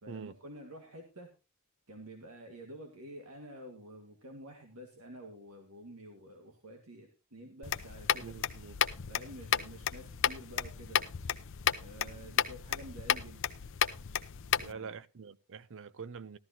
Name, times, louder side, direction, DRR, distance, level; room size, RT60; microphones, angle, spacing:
voice 1, 0.0-1.3 1.9-8.5 9.1-11.0 11.8-13.6 14.6-14.9, equal, 85° right, 2.0 m, -49 dB
sound 1, 7.6-14.7, left 10 dB, 60° left, 0.7 m, -33 dB
voice 2, 8.2-8.8 14.6-16.4, right 5 dB, 60° right, 0.6 m, -45 dB
14.0 x 13.0 x 2.9 m
head